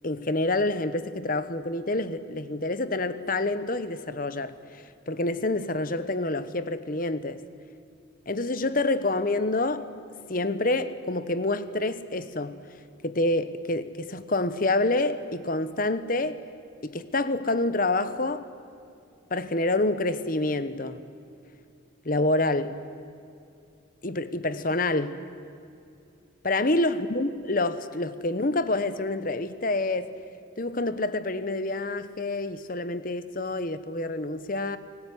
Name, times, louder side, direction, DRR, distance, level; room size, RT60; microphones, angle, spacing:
voice 1, 0.0-7.4 8.3-9.9 10.3-12.6 13.0-16.4 16.8-18.5 19.3-21.0 22.0-22.8 24.0-25.2 26.4-30.1 30.6-34.8, left 2 dB, 45° left, 1.1 m, -27 dB
29.5 x 19.0 x 9.8 m
head